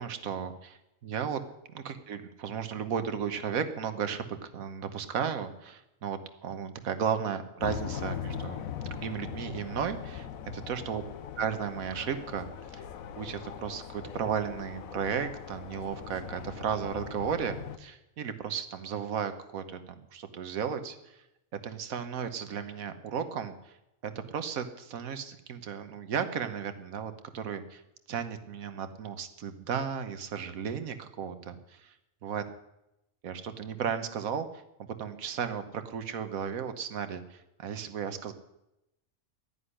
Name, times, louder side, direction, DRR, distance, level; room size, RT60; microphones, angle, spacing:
voice 1, 0.0-1.4 1.7-8.6 8.9-10.3 10.5-11.0 11.4-12.8 13.2-21.2 21.6-23.7 24.0-27.8 28.1-31.9 32.2-32.4 33.2-34.6 34.9-38.3, right 7 dB, 85° right, 10 dB, 1.5 m, -34 dB
sound 1, 7.6-17.8, left 8 dB, 90° left, 1.3 m, -40 dB
10.5 x 9.9 x 10.0 m, 0.90 s
omnidirectional pair, 1.4 m